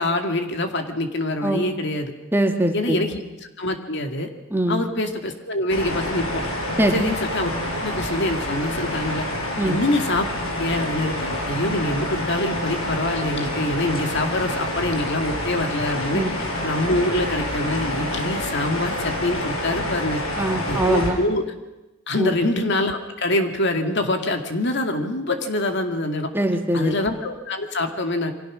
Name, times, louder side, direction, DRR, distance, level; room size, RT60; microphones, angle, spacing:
voice 1, 0.0-2.1 2.7-3.2 3.6-4.3 4.7-6.4 6.9-7.5 7.8-9.3 9.7-10.3 10.6-16.2 16.6-20.2 20.7-21.4 22.1-26.3 26.7-28.3, left 1 dB, 55° left, 5 dB, 2.3 m, -25 dB
voice 2, 2.3-3.1 4.5-4.8 6.8-7.1 9.6-9.8 16.1-16.3 20.4-21.2 22.2-22.3 26.3-27.0, right 1 dB, 10° right, 4 dB, 2.0 m, -22 dB
sound 1, 5.7-21.1, left 1 dB, 90° left, 6.3 m, -27 dB
28.0 x 24.0 x 6.4 m, 1.0 s
head